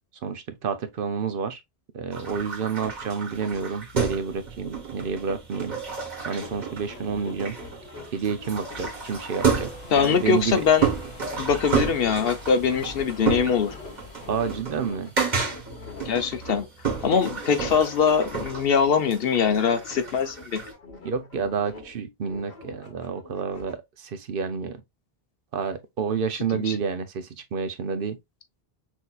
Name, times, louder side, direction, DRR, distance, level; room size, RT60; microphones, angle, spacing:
voice 1, 0.2-1.6 1.9-5.7 6.2-7.6 8.1-10.6 14.3-15.1 21.0-24.8 25.5-28.2, right 6 dB, 65° right, 0.8 m, -29 dB
sound 1, 2.1-20.7, right 6 dB, 45° right, 1.3 m, -31 dB
sound 2, 6.0-10.9 11.2-16.1 16.4-18.6 19.0-22.0 22.2-23.7, left 3 dB, 85° left, 1.4 m, -44 dB
sound 3, 8.5-14.6, left 3 dB, 30° left, 2.0 m, -44 dB
voice 2, 9.9-10.9 11.4-13.8 16.0-16.7 17.0-20.6 26.5-26.7, left 6 dB, 70° left, 0.9 m, -22 dB
6.0 x 2.7 x 2.3 m
omnidirectional pair, 1.0 m